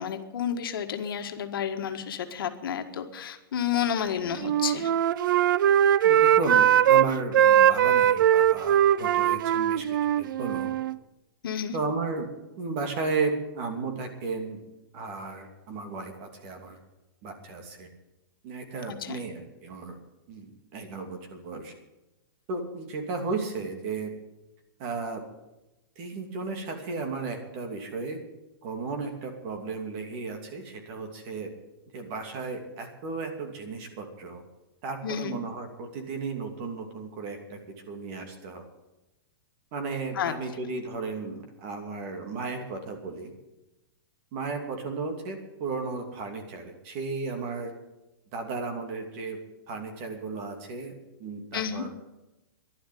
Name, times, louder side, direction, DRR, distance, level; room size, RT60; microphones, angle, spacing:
voice 1, 0.0-4.9 11.4-11.8 18.9-19.2 35.0-35.4 40.1-40.4 51.5-51.8, left 8 dB, 70° left, 6 dB, 1.7 m, -31 dB
Wind instrument woodwind instrument, 4.3-7.1 7.3-11.0, right 10 dB, 60° right, 0.5 m, -21 dB
voice 2, 6.0-10.7 11.7-12.3 12.6-14.6 14.9-16.8 17.2-17.9 18.4-20.0 20.3-21.7 22.5-24.1 24.8-25.2 26.0-28.2 28.6-31.5 31.9-34.4 34.8-37.6 37.9-38.6 39.7-43.3 44.3-47.7 48.3-49.4 49.7-50.9 51.2-51.9, right 4 dB, 35° right, 4 dB, 2.7 m, -34 dB
11.5 x 11.5 x 9.2 m, 0.96 s
hypercardioid pair, 160°, 12 cm